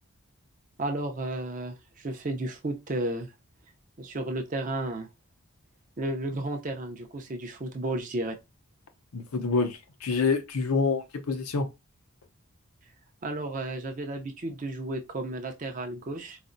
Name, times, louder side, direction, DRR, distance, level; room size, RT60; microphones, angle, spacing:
voice 1, 0.8-3.3 4.0-5.1 6.0-8.4 13.2-16.4, right 2 dB, 35° right, 0.5 m, -33 dB
voice 2, 9.1-11.7, left 4 dB, 80° left, 0.6 m, -27 dB
4.1 x 2.0 x 2.5 m
head